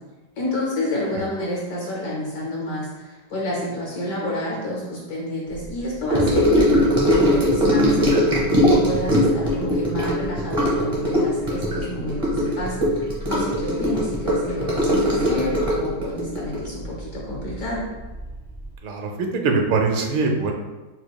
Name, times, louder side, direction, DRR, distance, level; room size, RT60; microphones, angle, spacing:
voice 1, 0.4-8.2 8.6-12.8 13.3-17.8, left 1 dB, 65° left, -3 dB, 0.9 m, -29 dB
Gurgling / Sink (filling or washing) / Trickle dribble, 6.1-17.8 18.0-18.3 18.6-18.7, equal, 50° right, 0.4 m, -20 dB
voice 2, 18.8-20.5, right 4 dB, 80° right, 2 dB, 1.3 m, -22 dB
5.8 x 2.3 x 2.2 m, 1.2 s
omnidirectional pair, 2.1 m